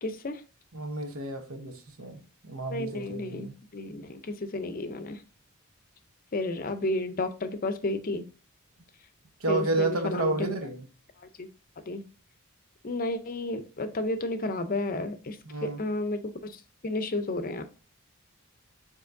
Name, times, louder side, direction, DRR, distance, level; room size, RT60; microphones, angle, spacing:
voice 1, 0.0-0.4 2.7-5.2 6.3-8.2 9.5-10.5 11.4-11.5 11.9-12.0 12.8-15.4 15.6-17.6, left 2 dB, 40° left, 0.6 m, -32 dB
voice 2, 0.7-3.5 9.4-10.9 15.4-15.8, right 2 dB, 65° right, 1.0 m, -31 dB
6.9 x 2.9 x 2.6 m
head